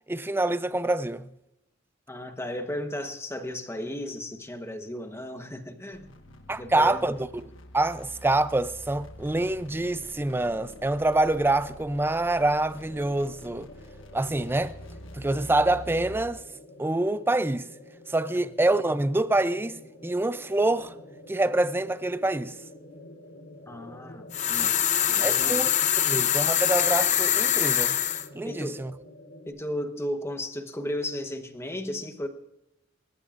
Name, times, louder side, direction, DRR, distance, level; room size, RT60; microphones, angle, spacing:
voice 1, 0.1-1.3 6.5-7.4 7.7-13.7 14.1-14.7 15.1-16.4 16.8-17.6 18.1-20.9 21.3-22.5 25.2-28.0 28.3-28.9, right 2 dB, 10° right, 0.4 m, -26 dB
voice 2, 2.1-6.1 6.6-7.1 18.4-18.6 23.7-24.7 25.1-25.6 28.4-28.8 29.5-32.3, left 1 dB, 15° left, 1.1 m, -35 dB
sound 1, 5.9-16.4, left 1 dB, 80° left, 1.4 m, -46 dB
sound 2, 9.8-29.5, left 1 dB, 60° left, 2.9 m, -48 dB
sound 3, 24.3-28.3, left 10 dB, 40° left, 0.7 m, -24 dB
27.5 x 14.5 x 2.5 m
head